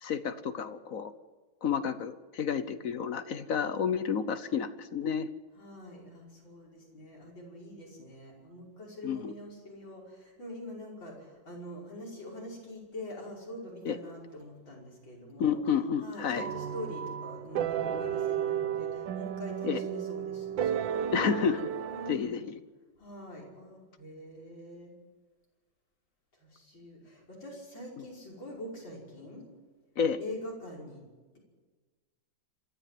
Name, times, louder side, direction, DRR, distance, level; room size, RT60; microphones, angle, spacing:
voice 1, 0.0-1.1 1.6-5.3 9.0-9.3 13.8-14.0 15.4-16.5 19.6-19.8 21.1-21.7 22.1-22.6 28.0-28.1 30.0-30.2, left 7 dB, 55° left, 12 dB, 1.1 m, -30 dB
voice 2, 5.6-15.6 16.0-21.1 21.9-22.4 23.0-24.9 26.3-29.5 30.2-31.0, left 1 dB, 75° left, -2 dB, 6.3 m, -44 dB
sound 1, 16.4-22.1, right 9 dB, 75° right, 1.6 m, -33 dB
27.0 x 13.0 x 7.7 m, 1.3 s
omnidirectional pair, 2.1 m